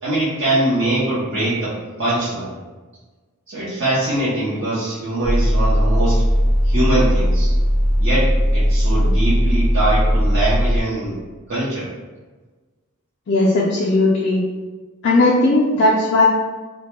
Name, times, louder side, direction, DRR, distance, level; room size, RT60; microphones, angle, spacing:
voice 1, 0.0-2.5 3.5-6.3 6.6-7.5 8.0-11.2 11.5-11.9, right 1 dB, 55° right, -10 dB, 0.6 m, -22 dB
sound 1, 5.2-10.8, equal, ahead, 0.5 m, -17 dB
voice 2, 13.3-14.4 15.0-16.2, left 2 dB, 50° left, -5 dB, 0.3 m, -16 dB
2.1 x 2.1 x 2.9 m, 1.3 s
head